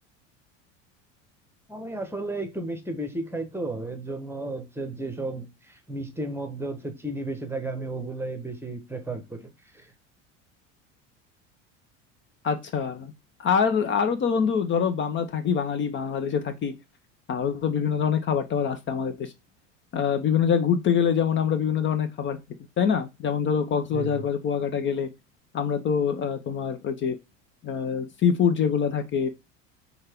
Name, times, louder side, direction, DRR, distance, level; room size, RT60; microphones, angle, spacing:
voice 1, 1.7-9.9 23.9-24.2, right 2 dB, 5° right, 1.0 m, -33 dB
voice 2, 12.4-13.1 13.4-16.7 17.3-19.3 19.9-22.4 22.8-25.1 25.5-27.2 27.6-29.3, left 7 dB, 30° left, 0.6 m, -25 dB
5.3 x 2.3 x 3.5 m
hypercardioid pair, 75°, 37 cm